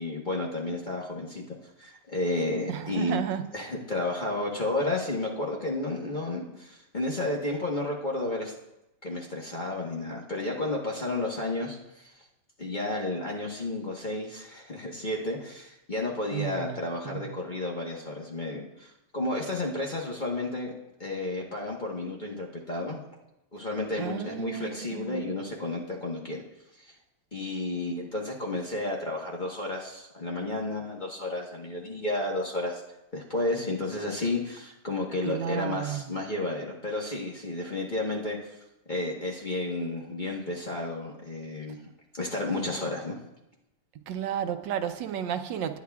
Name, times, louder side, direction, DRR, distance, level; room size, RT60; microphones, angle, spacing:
voice 1, 0.0-1.4 1.8-3.2 3.5-8.5 9.0-12.1 12.6-20.7 21.0-23.0 23.5-26.4 26.7-26.9 27.3-32.8 33.1-38.6 38.9-41.8 42.1-43.2, left 2 dB, 30° left, -2 dB, 1.2 m, -32 dB
voice 2, 2.7-3.4 16.3-16.8 17.0-17.3 24.0-25.3 35.2-36.1 44.1-45.8, right 9 dB, 75° right, 8 dB, 1.3 m, -33 dB
19.5 x 9.3 x 2.3 m, 0.91 s
omnidirectional pair, 2.0 m